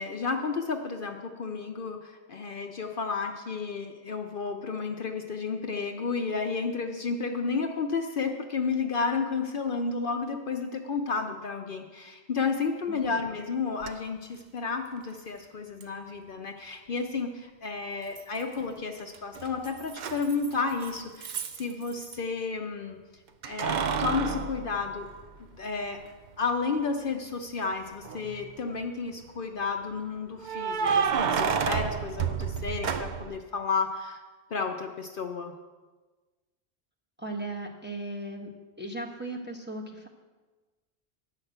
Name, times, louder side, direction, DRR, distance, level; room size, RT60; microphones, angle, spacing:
voice 1, 0.0-23.0 23.4-25.1 25.5-26.0 26.4-34.2 34.5-35.5, left 4 dB, 55° left, 4 dB, 0.8 m, -32 dB
Keys jangling, 13.8-13.9 15.8-15.9 18.2-18.7 19.0-22.2 23.4-25.6 26.0-26.1 27.9-28.5 30.4-33.4, right 6 dB, 55° right, 0.6 m, -30 dB
voice 2, 37.2-38.5 38.8-40.1, right 2 dB, 10° right, -1 dB, 1.1 m, -37 dB
11.0 x 5.9 x 7.9 m, 1.3 s
omnidirectional pair, 1.1 m